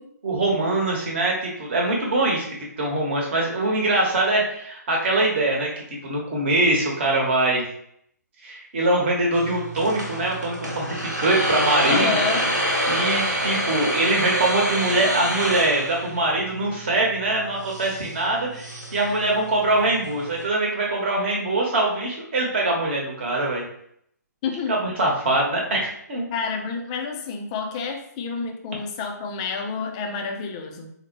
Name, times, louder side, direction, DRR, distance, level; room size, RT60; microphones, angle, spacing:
voice 1, 0.2-2.5 2.8-5.7 6.0-7.6 8.4-12.2 12.9-23.6 24.7-26.3, right 2 dB, 40° right, -1 dB, 1.0 m, -23 dB
sound 1, 9.3-20.4, equal, 85° right, 1.1 m, -27 dB
voice 2, 11.9-12.5 24.4-24.7 26.3-30.9, left 5 dB, 20° left, 4 dB, 0.4 m, -29 dB
4.1 x 2.1 x 2.9 m, 0.69 s
figure-of-eight pair, 135°, 10 cm